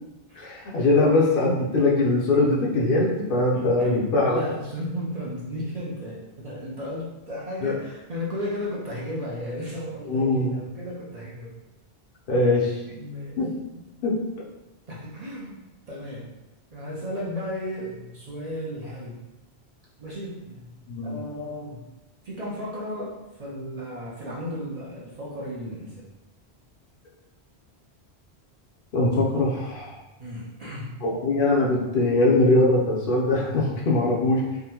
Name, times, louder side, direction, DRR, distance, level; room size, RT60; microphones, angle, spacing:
voice 1, 0.4-4.4 7.6-7.7 10.0-10.5 12.3-12.8 13.4-13.5 14.0-14.2 20.9-21.1 28.9-30.0 31.0-34.4, left 2 dB, 60° left, -3 dB, 0.7 m, -21 dB
voice 2, 3.5-11.6 12.9-13.6 14.9-16.3 16.7-19.2 20.0-20.7 21.0-21.9 22.2-26.1 30.2-31.0, equal, 45° right, -6 dB, 0.5 m, -34 dB
3.5 x 2.1 x 2.9 m, 1.0 s
omnidirectional pair, 1.1 m